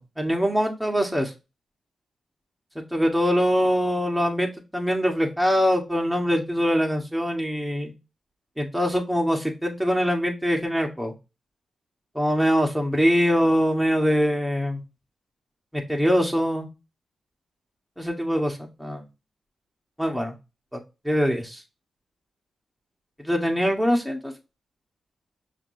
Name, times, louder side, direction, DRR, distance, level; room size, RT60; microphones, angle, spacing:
voice 1, 0.2-1.3 2.8-7.9 8.6-11.1 12.2-14.8 15.7-16.7 18.0-19.0 20.0-20.4 20.7-20.8 21.0-21.6 23.2-24.3, equal, 5° right, 2 dB, 1.7 m, -23 dB
5.8 x 3.0 x 2.8 m, 0.27 s
supercardioid pair, 40°, 0 cm